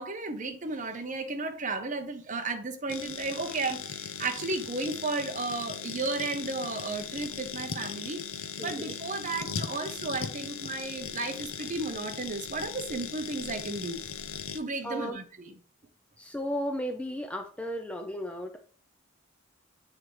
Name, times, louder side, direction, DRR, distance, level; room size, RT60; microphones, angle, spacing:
voice 1, 0.0-8.3 8.6-14.0 14.5-15.5, right 3 dB, 35° right, 0.8 m, -34 dB
sound 1, 2.9-14.6, left 7 dB, 75° left, 0.6 m, -38 dB
voice 2, 8.6-8.9 14.8-15.2 16.2-18.6, equal, 5° left, 0.4 m, -34 dB
7.6 x 4.4 x 3.2 m
head